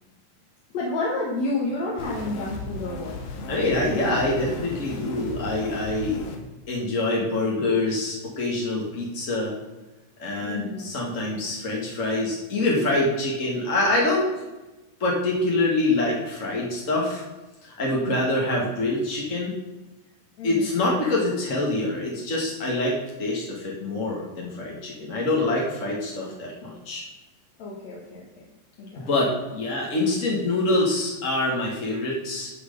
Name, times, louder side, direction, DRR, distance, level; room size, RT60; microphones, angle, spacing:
voice 1, 0.7-3.2 10.4-10.9 20.4-20.7 27.6-28.2 28.8-29.2, left 2 dB, 55° left, -4 dB, 2.5 m, -30 dB
sound 1, 2.0-6.4, left 2 dB, 85° left, 3.2 m, -35 dB
voice 2, 3.5-6.2 6.7-9.5 10.2-14.3 15.0-17.2 17.6-19.5 20.4-27.0 29.1-32.5, left 2 dB, 35° left, -3 dB, 1.4 m, -25 dB
11.5 x 6.4 x 5.3 m, 1.1 s
omnidirectional pair, 4.0 m